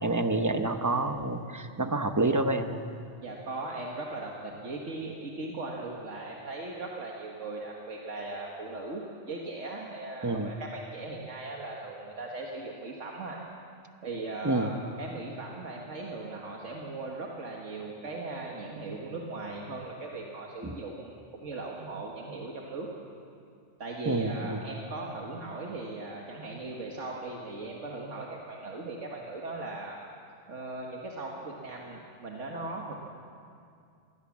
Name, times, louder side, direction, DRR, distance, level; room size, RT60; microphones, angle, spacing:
voice 1, 0.0-2.8 10.2-10.5 14.4-14.7 20.6-20.8 24.0-24.6, right 2 dB, 15° right, 7 dB, 0.9 m, -28 dB
voice 2, 3.2-13.4 14.0-14.7 15.0-22.9 23.8-30.0 30.5-32.9, right 2 dB, 90° right, -1 dB, 2.0 m, -38 dB
21.5 x 17.0 x 7.3 m, 2.4 s
omnidirectional pair, 1.2 m